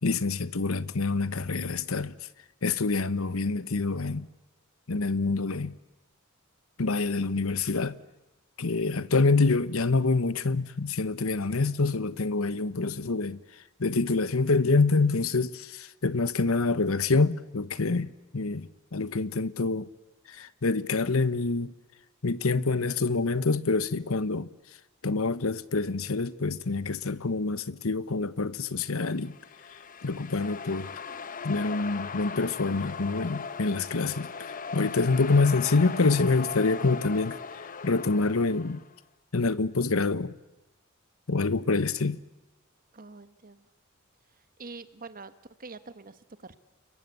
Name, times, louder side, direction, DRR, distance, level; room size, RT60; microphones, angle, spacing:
voice 1, 0.0-2.1 2.6-4.3 4.9-5.8 6.8-8.0 8.6-13.4 13.8-19.9 20.3-21.7 22.2-24.5 25.0-29.3 30.0-30.9 31.4-38.8 39.3-40.3 41.3-42.2, left 3 dB, 75° left, 1.0 m, -26 dB
sound 1, 29.1-38.9, left 5 dB, 40° left, 0.9 m, -39 dB
voice 2, 42.9-43.6 44.6-45.3 45.6-46.6, right 3 dB, 40° right, 1.3 m, -45 dB
29.0 x 22.5 x 8.2 m
head